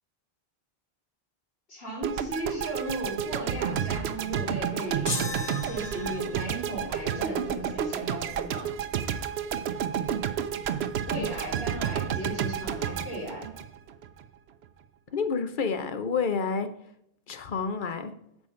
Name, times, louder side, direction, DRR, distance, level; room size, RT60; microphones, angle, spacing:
voice 1, 1.7-5.1 5.6-8.7 11.1-13.5, right 1 dB, 75° left, 3.3 m, -36 dB
sound 1, 2.0-14.2, right 8 dB, 85° right, 0.9 m, -31 dB
sound 2, 5.1-6.5, left 3 dB, 30° left, 0.8 m, -35 dB
voice 2, 15.1-16.8 17.3-18.2, left 5 dB, 55° left, 0.9 m, -29 dB
7.2 x 4.8 x 5.6 m
omnidirectional pair, 1.0 m